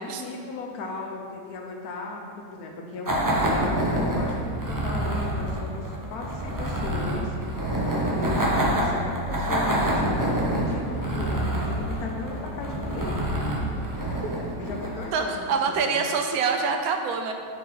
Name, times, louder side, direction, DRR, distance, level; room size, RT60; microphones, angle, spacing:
voice 1, 0.0-7.4 7.9-13.4 14.6-15.9, left 3 dB, 85° left, 1 dB, 1.3 m, -36 dB
sound 1, 3.0-15.2, right 1 dB, 25° right, 0.4 m, -27 dB
sound 2, 9.6-15.1, right 1 dB, 35° left, 1.2 m, -37 dB
voice 2, 15.1-17.3, right 5 dB, 80° right, 4 dB, 1.1 m, -25 dB
5.9 x 4.9 x 4.0 m, 2.1 s
omnidirectional pair, 1.6 m